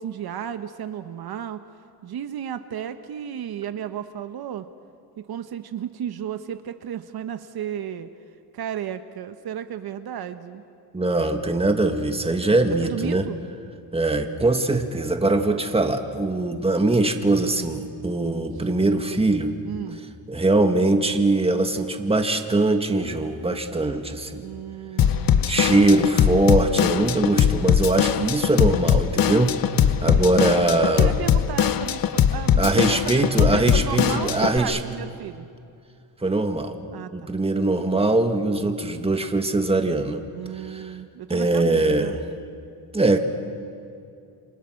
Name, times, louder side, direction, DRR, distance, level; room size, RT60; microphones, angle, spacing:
voice 1, 0.0-1.6 2.0-4.7 5.2-8.1 8.5-10.6 12.8-13.4 19.6-20.0 24.4-25.6 30.1-30.4 30.8-35.5 36.9-37.3 38.5-38.7 40.3-42.1, right 9 dB, 65° right, 9 dB, 1.1 m, -33 dB
voice 2, 10.9-13.3 13.9-19.6 20.3-24.4 25.5-31.1 32.6-34.8 36.2-40.2 40.5-41.0 41.3-42.2 42.9-43.2, right 2 dB, 15° right, 6 dB, 1.8 m, -22 dB
Drum kit / Drum, 25.0-34.6, left 9 dB, 55° left, 1.0 m, -21 dB
28.5 x 26.0 x 6.4 m, 2.5 s
cardioid pair, 110°, 40 cm